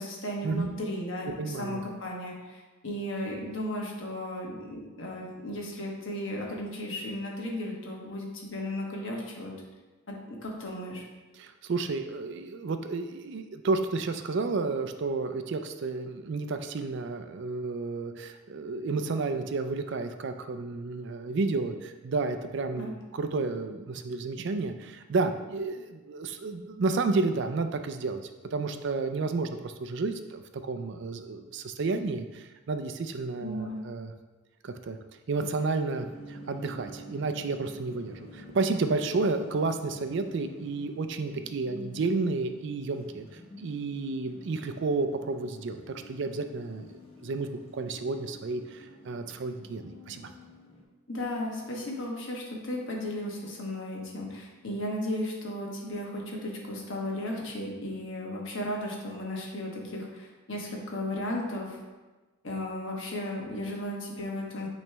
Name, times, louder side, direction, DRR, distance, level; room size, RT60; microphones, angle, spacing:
voice 1, 0.0-9.5 10.1-11.0 22.8-22.9 33.4-33.8 51.1-61.8 62.4-64.7, left 1 dB, 60° left, -1 dB, 1.2 m, -35 dB
voice 2, 1.4-1.8 11.3-28.2 28.5-34.1 34.6-35.0 35.3-46.9 47.2-50.3, right 3 dB, 55° right, 8 dB, 0.4 m, -31 dB
sound 1, 35.9-50.8, left 1 dB, 25° left, 1.0 m, -48 dB
8.7 x 3.2 x 3.4 m, 1.2 s
head